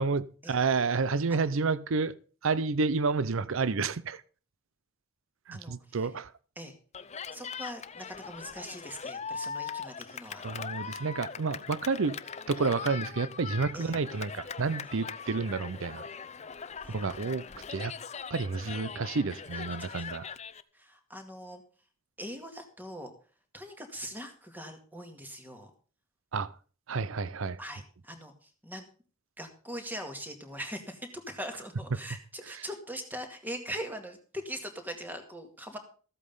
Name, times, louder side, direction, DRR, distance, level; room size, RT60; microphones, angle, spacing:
voice 1, 0.0-2.1 2.4-4.2 5.5-6.3 10.4-12.2 12.5-16.1 16.9-17.4 17.7-17.9 18.3-20.3 26.3-26.5 26.9-27.6 32.5-32.6, right 4 dB, 65° right, 0.6 m, -30 dB
voice 2, 5.5-6.0 6.6-6.7 7.3-10.5 13.7-14.0 16.8-17.7 19.9-20.1 20.7-21.6 22.2-23.1 23.5-25.7 27.6-28.9 29.4-35.8, equal, 10° right, 2.1 m, -41 dB
Cheering, 6.9-20.6, left 6 dB, 30° left, 0.6 m, -41 dB
14.5 x 8.4 x 5.4 m
head